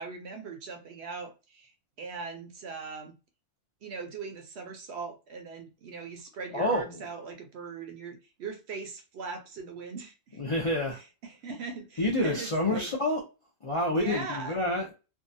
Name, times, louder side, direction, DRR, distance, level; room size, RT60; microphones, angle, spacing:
voice 1, 0.0-1.7 2.0-3.1 3.8-10.4 10.9-12.9 13.9-14.6, right 4 dB, 65° right, 0.8 m, -40 dB
voice 2, 6.5-7.1 10.3-11.0 12.0-13.2 13.6-14.9, left 1 dB, 60° left, 0.3 m, -28 dB
2.7 x 2.2 x 2.5 m
omnidirectional pair, 1.4 m